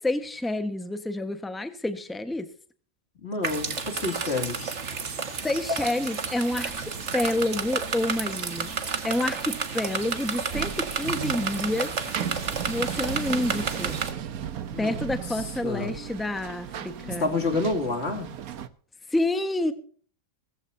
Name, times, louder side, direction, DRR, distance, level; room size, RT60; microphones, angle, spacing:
voice 1, 0.0-2.5 5.4-8.7 9.0-11.9 12.7-14.0 14.8-17.3 19.1-19.7, left 1 dB, ahead, 9 dB, 1.2 m, -28 dB
voice 2, 3.2-4.8 14.7-15.0 15.3-16.0 17.0-18.3, left 3 dB, 45° left, 4 dB, 3.0 m, -29 dB
sound 1, 3.4-14.1, right 5 dB, 55° right, 1.9 m, -31 dB
sound 2, 6.7-18.7, right 9 dB, 90° right, 1.4 m, -37 dB
19.0 x 15.0 x 2.7 m, 0.43 s
omnidirectional pair, 1.5 m